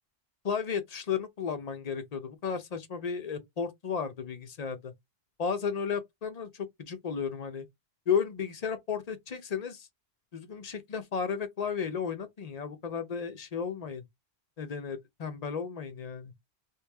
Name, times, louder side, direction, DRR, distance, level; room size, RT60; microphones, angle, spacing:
voice 1, 0.4-4.9 5.4-7.7 8.1-9.9 10.3-14.0 14.6-16.3, left 6 dB, 45° left, 0.7 m, -33 dB
3.1 x 2.8 x 3.4 m
omnidirectional pair, 1.1 m